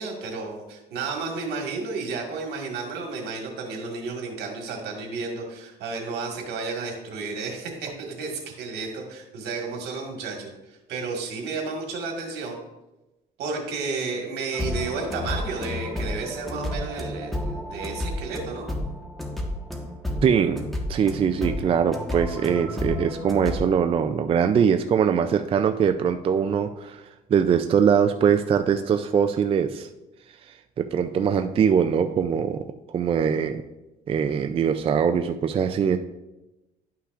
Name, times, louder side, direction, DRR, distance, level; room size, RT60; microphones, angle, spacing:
voice 1, 0.0-10.5 10.9-12.6 13.4-18.7, right 4 dB, 80° right, 1 dB, 1.8 m, -32 dB
sound 1, 14.5-23.6, left 1 dB, ahead, 1.2 m, -31 dB
voice 2, 20.2-27.0 27.3-29.9 30.8-33.6 34.1-36.0, right 7 dB, 35° right, 7 dB, 0.4 m, -22 dB
11.0 x 5.7 x 2.5 m, 1.0 s
cardioid pair, 110°, 17 cm